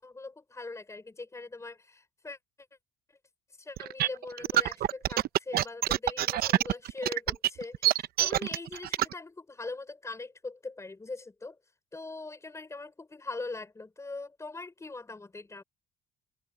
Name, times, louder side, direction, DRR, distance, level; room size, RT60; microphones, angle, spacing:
voice 1, 0.0-2.4 3.6-11.6 11.9-15.6, left 3 dB, 15° left, 5.3 m, -41 dB
sound 1, 3.8-9.1, right 13 dB, 65° right, 0.8 m, -26 dB
cardioid pair, 110°, 17 cm